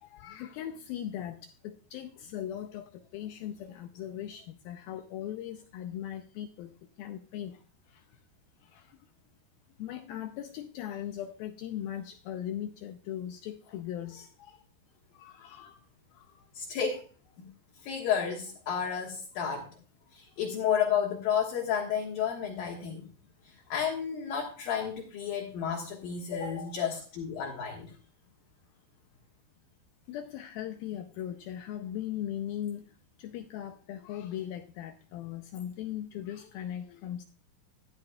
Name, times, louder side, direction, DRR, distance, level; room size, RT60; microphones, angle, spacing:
voice 1, 0.0-6.7 7.0-7.6 8.7-8.8 9.8-14.6 15.1-15.8 16.2-16.4 19.3-19.5 30.1-32.8 33.2-37.2, left 11 dB, 85° left, 7 dB, 2.1 m, -39 dB
voice 2, 16.5-17.0 17.4-17.5 17.8-19.7 20.1-23.1 23.4-27.9, left 7 dB, 65° left, -1 dB, 2.9 m, -31 dB
13.5 x 12.5 x 2.3 m, 0.38 s
omnidirectional pair, 5.0 m